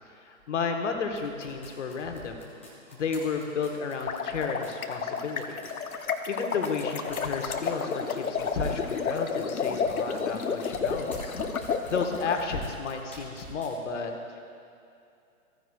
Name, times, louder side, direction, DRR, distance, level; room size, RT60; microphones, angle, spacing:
voice 1, 0.2-2.5 3.0-5.6 6.3-14.1, left 5 dB, 55° left, 4 dB, 1.2 m, -32 dB
sound 1, 1.1-13.8, right 1 dB, 10° left, 0.3 m, -47 dB
sound 2, 3.9-12.4, left 5 dB, 85° left, 0.8 m, -31 dB
15.0 x 9.6 x 2.3 m, 2.6 s
figure-of-eight pair, 130°, 42 cm